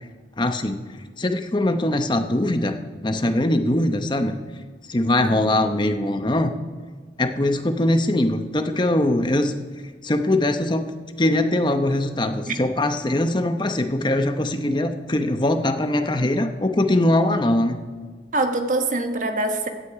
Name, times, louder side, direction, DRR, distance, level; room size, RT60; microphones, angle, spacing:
voice 1, 0.4-0.8 1.2-2.8 3.0-4.4 4.9-6.5 7.2-9.5 10.0-10.9 11.2-17.8, left 1 dB, 25° left, 7 dB, 0.8 m, -21 dB
voice 2, 5.2-5.5 12.5-12.6 18.3-19.7, right 2 dB, 45° right, 6 dB, 1.2 m, -24 dB
16.0 x 8.7 x 4.9 m, 1.5 s
head